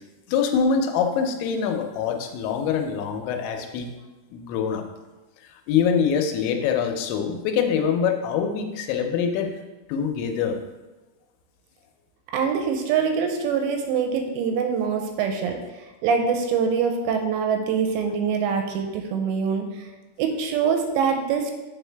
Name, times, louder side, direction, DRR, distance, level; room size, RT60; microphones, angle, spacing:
voice 1, 0.3-3.9 4.3-4.8 5.7-9.5 9.9-10.6, left 6 dB, 85° left, 4 dB, 2.9 m, -24 dB
voice 2, 12.3-15.6 16.0-19.9 20.2-21.5, right 6 dB, 80° right, 4 dB, 2.7 m, -24 dB
8.8 x 4.5 x 3.3 m, 1.1 s
omnidirectional pair, 5.3 m